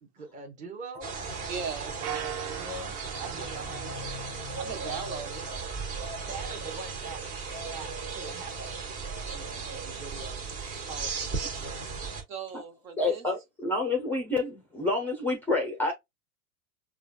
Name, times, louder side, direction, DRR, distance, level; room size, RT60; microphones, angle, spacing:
voice 1, 0.0-1.5 1.9-2.9 3.2-4.1 6.3-7.2 7.7-10.5 10.9-12.0, right 3 dB, 15° right, 0.8 m, -44 dB
sound 1, 1.0-12.2, right 4 dB, 35° right, 1.3 m, -36 dB
voice 2, 1.5-2.0 3.2-3.9 4.5-5.5 12.3-13.3, right 6 dB, 60° right, 1.5 m, -38 dB
sound 2, 2.0-4.7, right 10 dB, 90° right, 0.6 m, -40 dB
voice 3, 13.0-15.9, left 3 dB, 5° left, 0.5 m, -28 dB
4.9 x 2.3 x 2.2 m
hypercardioid pair, 130°, 44 cm